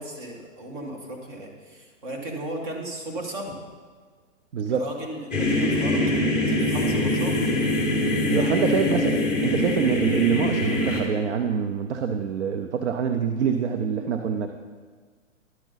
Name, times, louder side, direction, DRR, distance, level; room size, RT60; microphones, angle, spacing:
voice 1, 0.0-3.6 4.7-7.4 8.3-8.7, right 1 dB, 40° right, 0 dB, 1.8 m, -36 dB
voice 2, 4.5-4.9 8.3-14.5, right 7 dB, 60° right, 7 dB, 0.7 m, -25 dB
sound 1, 5.3-11.0, left 1 dB, ahead, 0.8 m, -23 dB
11.0 x 7.2 x 4.0 m, 1.5 s
hypercardioid pair, 155°, 39 cm